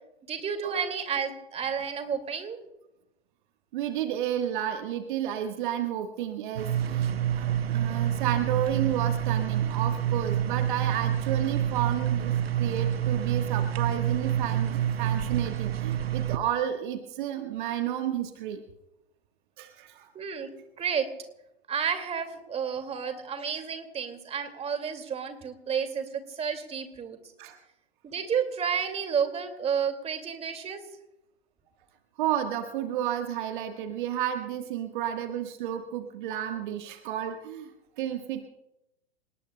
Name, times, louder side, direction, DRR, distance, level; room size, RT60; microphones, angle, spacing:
voice 1, 0.3-2.6 20.1-20.5 20.8-21.1 21.7-27.2 28.0-30.8, right 7 dB, 20° right, 8 dB, 2.3 m, -31 dB
voice 2, 3.7-7.1 7.3-18.6 19.6-20.1 27.4-27.5 32.2-37.7 38.0-38.5, right 11 dB, 55° right, 6 dB, 1.4 m, -31 dB
sound 1, 6.6-16.4, right 10 dB, 75° right, 0.8 m, -27 dB
28.0 x 19.5 x 2.2 m, 0.89 s
figure-of-eight pair, 100°, 31 cm